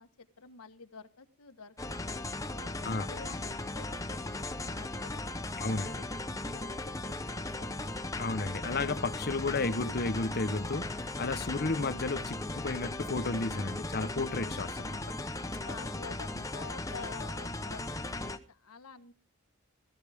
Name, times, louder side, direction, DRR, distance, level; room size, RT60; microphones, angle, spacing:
voice 1, 0.0-6.0 6.3-8.1 15.4-19.1, left 5 dB, 90° left, 1.4 m, -49 dB
sound 1, 1.8-18.4, left 2 dB, 15° left, 0.8 m, -37 dB
voice 2, 5.6-5.9 8.2-15.0, left 3 dB, 45° left, 0.8 m, -33 dB
15.0 x 14.5 x 3.5 m
head